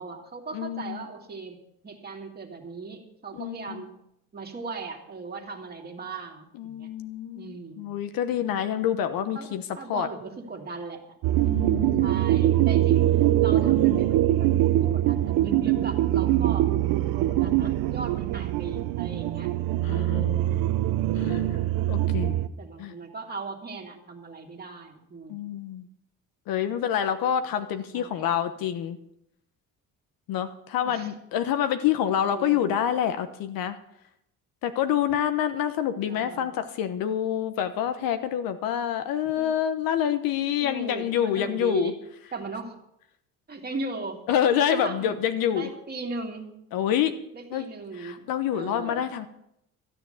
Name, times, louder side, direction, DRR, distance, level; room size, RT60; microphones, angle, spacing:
voice 1, 0.0-1.6 1.8-3.9 4.3-6.9 7.3-7.9 9.3-11.0 12.0-13.1 13.4-16.7 17.1-19.5 19.9-20.5 22.6-25.4 27.9-28.2 30.8-31.1 32.2-32.8 36.1-36.6 39.4-39.5 40.6-42.0 42.3-42.8 43.5-44.2 44.7-45.1 45.5-46.5 47.3-48.2 48.5-49.1, right 4 dB, 30° right, 3 dB, 2.4 m, -38 dB
voice 2, 0.5-1.0 3.4-3.8 6.6-9.6 9.9-10.1 11.4-12.1 19.8-20.7 21.2-21.6 21.9-22.4 22.8-22.9 25.3-25.9 26.5-29.0 30.3-33.8 34.6-41.9 44.3-45.7 46.7-47.2 47.5-47.6 47.9-49.3, left 9 dB, 80° left, 9 dB, 1.1 m, -27 dB
sound 1, 11.2-22.5, right 13 dB, 90° right, 0.8 m, -23 dB
13.5 x 9.6 x 7.8 m, 0.78 s
cardioid pair, 140°, 34 cm